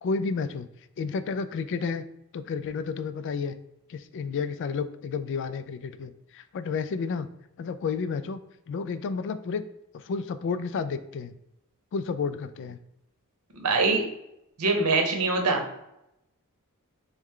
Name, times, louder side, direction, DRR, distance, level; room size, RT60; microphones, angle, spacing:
voice 1, 0.0-0.7 1.0-2.1 2.3-3.6 3.9-7.3 7.6-8.4 8.7-9.6 9.9-11.3 11.9-12.8, left 5 dB, 55° left, 12 dB, 0.3 m, -31 dB
voice 2, 13.6-14.0 14.6-15.6, right 3 dB, 85° right, 3 dB, 0.9 m, -23 dB
3.4 x 3.1 x 3.7 m, 0.83 s
head